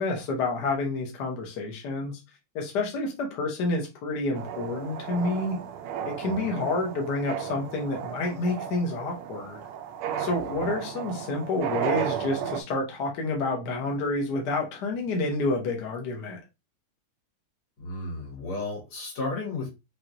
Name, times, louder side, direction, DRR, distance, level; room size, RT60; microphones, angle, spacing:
voice 1, 0.0-2.2 2.5-5.6 6.0-9.6 10.2-16.4, left 2 dB, 55° left, 1 dB, 1.5 m, -29 dB
sound 1, 4.3-12.6, right 8 dB, 85° right, 1.6 m, -34 dB
voice 2, 6.2-6.7 10.5-10.7 17.8-19.7, left 3 dB, 75° left, -3 dB, 2.8 m, -34 dB
6.0 x 3.0 x 2.6 m, 0.25 s
omnidirectional pair, 2.4 m